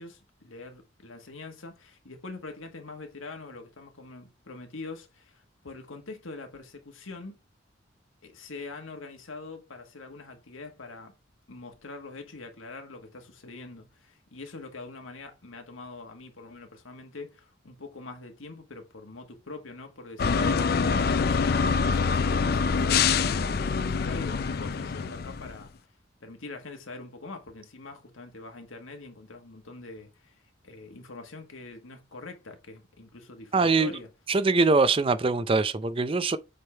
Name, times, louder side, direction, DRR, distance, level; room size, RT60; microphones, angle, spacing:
voice 1, 0.0-7.4 8.2-11.1 11.5-20.6 21.1-25.7 26.2-34.1, left 3 dB, 90° left, 1.6 m, -44 dB
sound 1, 20.2-25.6, left 5 dB, 50° left, 0.4 m, -25 dB
voice 2, 33.5-33.9 34.3-36.4, right 3 dB, 25° right, 0.4 m, -23 dB
7.5 x 3.6 x 4.4 m
head